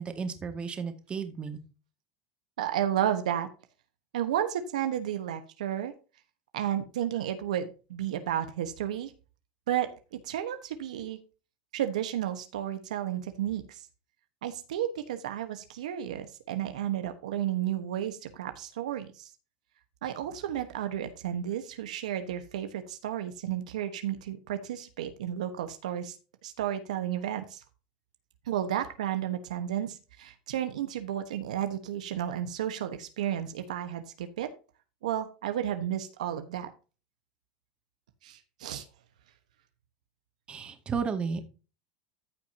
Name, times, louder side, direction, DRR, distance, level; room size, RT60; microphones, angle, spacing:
voice 1, 0.0-1.6 40.5-41.4, right 5 dB, 30° right, 7 dB, 2.1 m, -33 dB
voice 2, 2.6-3.5 4.1-5.9 6.5-9.1 9.7-11.2 11.7-13.8 14.4-19.3 20.0-26.2 26.4-27.6 28.5-34.5 35.0-36.7 38.2-38.9, right 11 dB, 85° right, 8 dB, 1.2 m, -32 dB
14.5 x 5.7 x 2.8 m, 0.33 s
hypercardioid pair, 105°, 4 cm